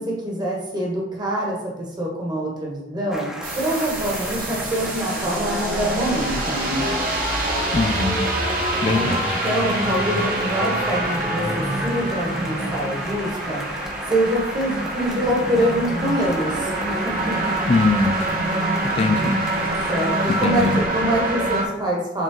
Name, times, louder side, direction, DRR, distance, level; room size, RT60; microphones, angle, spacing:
voice 1, 0.0-6.8 8.8-9.1 9.4-13.6 14.1-17.3 19.1-19.3 19.9-22.2, right 1 dB, 25° right, -3 dB, 1.4 m, -25 dB
sound 1, 3.1-20.9, equal, 5° right, 1.0 m, -34 dB
sound 2, 3.4-21.6, right 1 dB, 50° right, 1.4 m, -25 dB
voice 2, 7.7-8.3 8.8-9.4 17.7-18.1 19.0-19.4 20.4-20.8, left 3 dB, 30° left, 9 dB, 0.4 m, -21 dB
7.3 x 3.9 x 3.8 m, 0.91 s
head